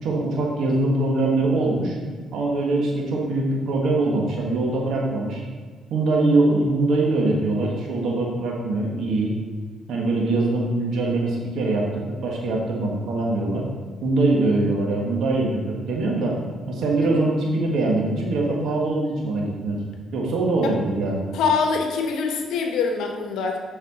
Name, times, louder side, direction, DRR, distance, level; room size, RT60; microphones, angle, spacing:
voice 1, 0.0-1.9 2.3-5.4 5.9-9.3 9.9-13.6 14.0-16.4 16.7-19.8 20.1-21.2, right 2 dB, 75° right, -2 dB, 1.6 m, -23 dB
voice 2, 21.3-23.6, left 5 dB, 85° left, 3 dB, 1.1 m, -24 dB
7.4 x 5.9 x 4.3 m, 1.5 s
cardioid pair, 90°, 0 cm